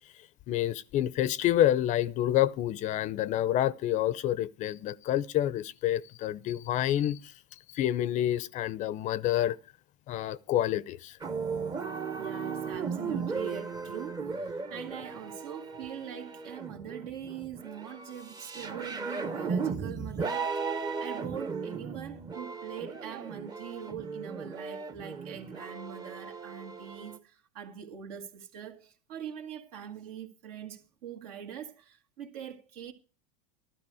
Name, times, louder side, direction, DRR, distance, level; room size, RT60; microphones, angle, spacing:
voice 1, 0.5-7.3 7.7-9.6 10.1-11.2, left 12 dB, 35° left, 0.5 m, -28 dB
sound 1, 11.2-27.2, right 5 dB, 20° right, 0.8 m, -36 dB
voice 2, 12.2-32.9, right 9 dB, 70° right, 2.1 m, -43 dB
12.5 x 12.0 x 4.8 m
supercardioid pair, 130°, 20 cm